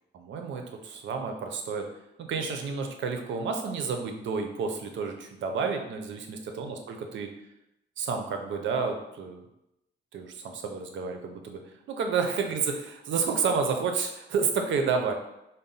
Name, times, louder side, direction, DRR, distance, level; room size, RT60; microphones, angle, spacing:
voice 1, 0.1-1.9 2.2-7.3 8.0-9.4 10.1-11.6 11.9-15.1, right 5 dB, 80° right, 4 dB, 0.6 m, -30 dB
3.9 x 2.1 x 3.9 m, 0.87 s
cardioid pair, 110°, 19 cm